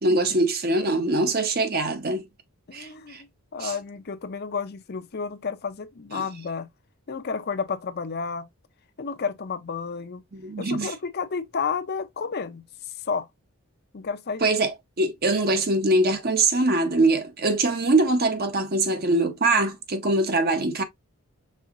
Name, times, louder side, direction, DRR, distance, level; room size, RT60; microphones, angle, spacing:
voice 1, 0.0-2.2 2.7-3.2 3.6-3.7 6.1-6.2 10.3-10.9 14.4-20.8, right 2 dB, 45° right, 0.8 m, -23 dB
voice 2, 2.7-3.3 3.5-6.7 7.1-8.5 9.0-10.2 10.6-13.3 13.9-14.4, left 5 dB, 45° left, 0.6 m, -31 dB
5.4 x 3.6 x 2.4 m
head